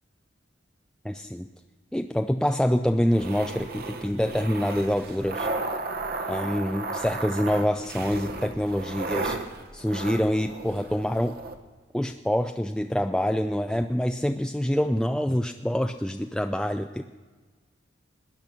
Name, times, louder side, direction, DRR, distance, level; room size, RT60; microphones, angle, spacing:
voice 1, 1.0-1.5 1.9-5.5 6.3-9.4 9.7-11.4 11.9-17.0, equal, 5° left, 6 dB, 0.4 m, -26 dB
sound 1, 3.1-11.6, right 3 dB, 55° right, 1.2 m, -34 dB
19.0 x 10.5 x 5.9 m, 1.4 s
head